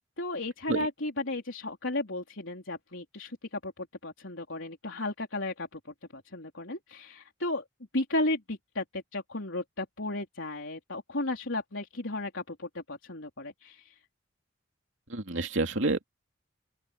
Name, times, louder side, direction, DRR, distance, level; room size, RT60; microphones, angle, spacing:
voice 1, 0.2-5.8 6.1-7.6 7.9-13.9, left 2 dB, 70° left, 3.9 m, -34 dB
voice 2, 15.1-16.1, right 2 dB, 65° right, 2.9 m, -29 dB
open air
head